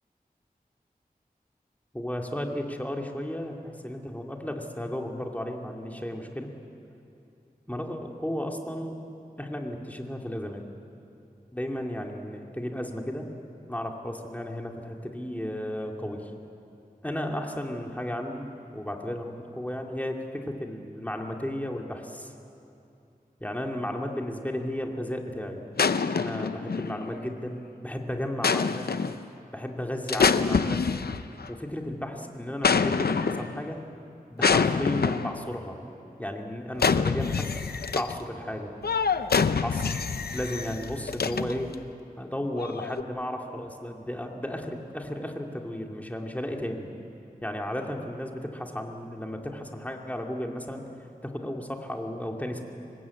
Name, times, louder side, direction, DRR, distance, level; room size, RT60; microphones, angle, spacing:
voice 1, 1.9-6.5 7.7-9.0 9.4-10.6 11.5-13.3 13.7-16.3 17.0-22.3 23.4-25.6 26.1-28.9 29.5-30.8 31.5-33.8 34.3-35.8 36.2-38.7 39.6-40.1 40.3-41.7 42.2-46.9 47.4-50.9 51.2-52.6, left 1 dB, 10° left, 1 dB, 2.5 m, -34 dB
sound 1, 25.8-27.2 28.4-29.2 30.1-31.5 32.6-33.6 34.4-35.5 36.8-38.2 38.8-41.7 42.6-43.0, left 5 dB, 90° left, 0.6 m, -26 dB
25.5 x 20.0 x 8.4 m, 2.7 s
wide cardioid pair, 75°, 16 cm